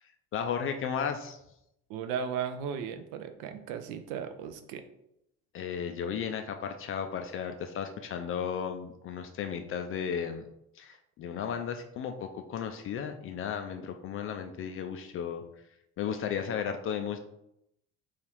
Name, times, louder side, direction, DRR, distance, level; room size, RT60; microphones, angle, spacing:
voice 1, 0.3-1.4 5.5-10.4 10.8-15.4 16.0-17.2, left 7 dB, 30° left, 6 dB, 0.4 m, -34 dB
voice 2, 1.9-4.8, right 7 dB, 60° right, 9 dB, 0.6 m, -36 dB
3.9 x 2.4 x 4.5 m, 0.80 s
figure-of-eight pair, 50°, 44 cm